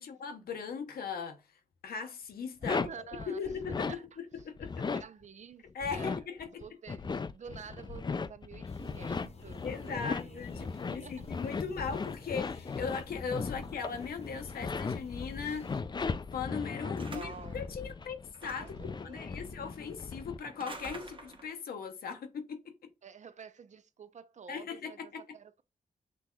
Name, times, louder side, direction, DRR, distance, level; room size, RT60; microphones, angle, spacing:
voice 1, 0.0-1.4 1.8-2.9 3.3-3.9 4.4-4.9 5.7-6.6 9.6-15.7 16.3-22.7 24.5-25.2, left 6 dB, 75° left, 0.7 m, -39 dB
sound 1, 2.6-3.9 4.4-5.0 5.7-20.4, left 4 dB, 30° left, 0.4 m, -37 dB
voice 2, 2.7-4.0 4.9-11.3 16.8-17.8 18.6-19.7 23.0-25.6, right 6 dB, 50° right, 0.5 m, -49 dB
sound 2, 8.6-15.8, left 4 dB, 45° left, 0.9 m, -52 dB
sound 3, 17.0-17.6 18.3-18.9 20.4-21.6, right 2 dB, 35° right, 1.0 m, -47 dB
6.0 x 2.7 x 2.3 m
supercardioid pair, 45°, 16 cm